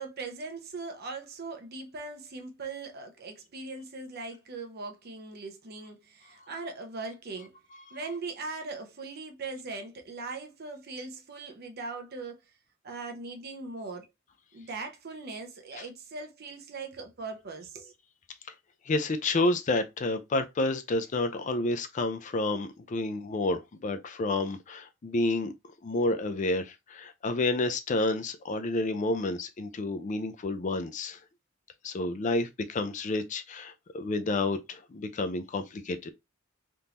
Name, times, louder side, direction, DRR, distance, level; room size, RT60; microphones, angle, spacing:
voice 1, 0.0-7.5 7.9-12.4 12.8-14.0 14.5-17.9, right 3 dB, 50° right, 0.7 m, -40 dB
voice 2, 18.9-25.5 25.8-31.2 31.8-36.1, left 2 dB, 40° left, 0.4 m, -30 dB
3.6 x 2.5 x 2.8 m
head